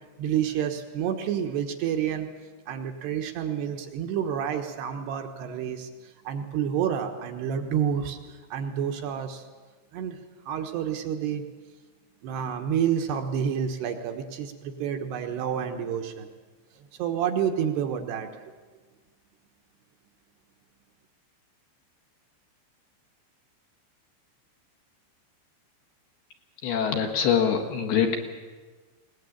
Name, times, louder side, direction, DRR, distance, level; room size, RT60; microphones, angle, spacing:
voice 1, 0.2-2.3 2.7-9.4 9.9-10.2 10.5-11.4 12.2-16.3 16.8-18.3, right 8 dB, 70° right, 5 dB, 3.1 m, -29 dB
voice 2, 26.6-28.2, left 7 dB, 65° left, 3 dB, 3.3 m, -24 dB
21.0 x 19.0 x 8.6 m, 1.4 s
omnidirectional pair, 5.5 m